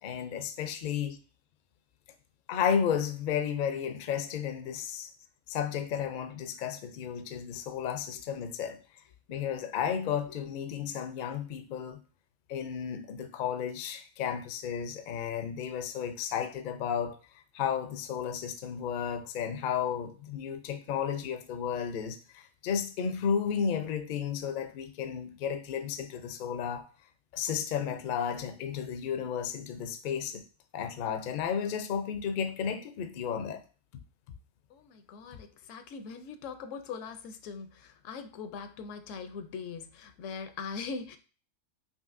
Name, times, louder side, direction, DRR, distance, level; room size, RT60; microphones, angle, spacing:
voice 1, 0.0-1.2 2.5-5.1 5.5-8.8 9.3-12.0 12.5-17.2 17.5-26.9 27.3-30.4 30.7-33.6, left 7 dB, 60° left, 0.5 m, -33 dB
voice 2, 34.7-37.7 38.0-41.2, left 5 dB, 85° left, 0.9 m, -41 dB
5.4 x 2.7 x 2.5 m
omnidirectional pair, 1.3 m